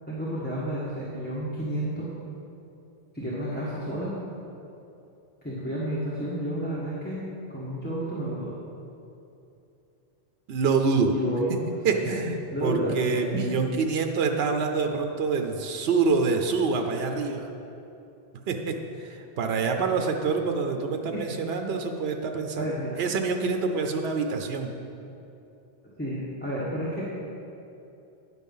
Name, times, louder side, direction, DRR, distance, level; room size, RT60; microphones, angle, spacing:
voice 1, 0.1-2.1 3.1-4.1 5.4-7.2 7.5-8.5 11.1-11.5 12.0-12.1 12.5-13.0 13.3-13.4 21.1-21.2 22.6-23.0 26.0-27.0, right 1 dB, 10° left, -9 dB, 1.3 m, -31 dB
voice 2, 10.5-11.1 11.8-17.5 18.5-22.7 23.0-24.7, right 4 dB, 65° right, 5 dB, 0.9 m, -26 dB
9.9 x 6.3 x 5.4 m, 2.8 s
omnidirectional pair, 1.1 m